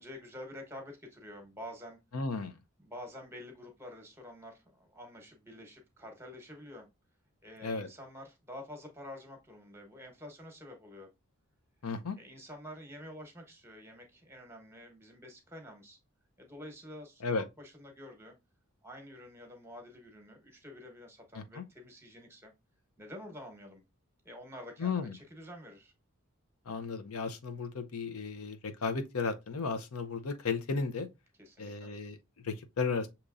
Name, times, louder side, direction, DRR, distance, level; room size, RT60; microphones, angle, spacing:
voice 1, 0.0-2.0 2.8-6.9 7.4-11.1 12.2-16.0 16.4-17.2 17.6-18.3 18.8-22.5 23.0-23.8 24.2-25.9 31.4-31.9, left 1 dB, 10° right, 1.0 m, -48 dB
voice 2, 2.1-2.6 7.6-7.9 11.8-12.2 17.2-17.4 21.3-21.6 24.8-25.2 26.7-31.1 31.6-33.1, left 4 dB, 85° left, 0.6 m, -34 dB
6.6 x 2.9 x 2.4 m
head